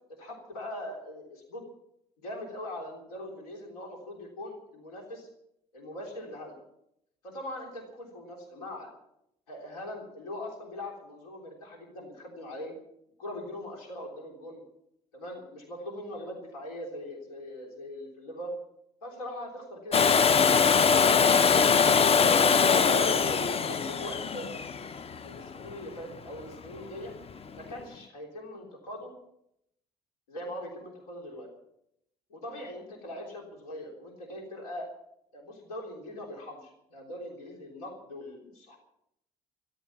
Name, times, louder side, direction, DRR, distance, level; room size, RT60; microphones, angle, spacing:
voice 1, 0.2-1.6 2.2-5.3 5.7-6.6 7.2-8.9 9.5-12.7 13.2-14.6 15.1-18.5 19.0-21.0 22.0-24.6 25.2-27.1 27.5-29.1 30.3-31.5 32.3-34.9 35.3-38.8, left 1 dB, 80° left, 0 dB, 3.6 m, -41 dB
Domestic sounds home sounds, 19.9-25.7 27.7-27.8, left 6 dB, 30° left, 0.8 m, -22 dB
14.0 x 13.5 x 7.2 m, 0.77 s
figure-of-eight pair, 55°, 19 cm